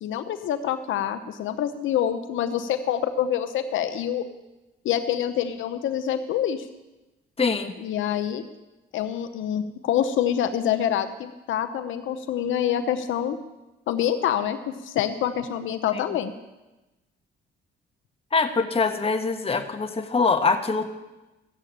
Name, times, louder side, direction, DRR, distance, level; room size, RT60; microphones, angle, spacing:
voice 1, 0.0-4.2 4.8-6.7 7.8-8.4 8.9-13.4 13.9-16.3, left 10 dB, 80° left, 9 dB, 0.8 m, -26 dB
voice 2, 7.4-7.7 15.9-16.0 18.3-20.9, left 4 dB, 30° left, 6 dB, 1.4 m, -23 dB
14.0 x 7.6 x 8.7 m, 1.1 s
cardioid pair, 90°, 20 cm